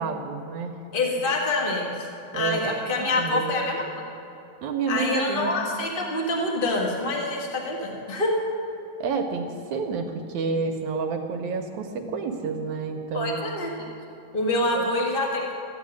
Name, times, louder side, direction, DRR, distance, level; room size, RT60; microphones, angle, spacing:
voice 1, 0.0-0.8 2.3-3.6 4.6-5.5 9.0-13.4 14.7-14.9, right 4 dB, 70° right, 4 dB, 2.0 m, -29 dB
voice 2, 0.9-3.8 4.9-8.3 13.1-13.7 14.3-15.5, left 2 dB, 45° left, -1 dB, 0.6 m, -26 dB
14.0 x 8.8 x 9.6 m, 3.0 s
omnidirectional pair, 3.9 m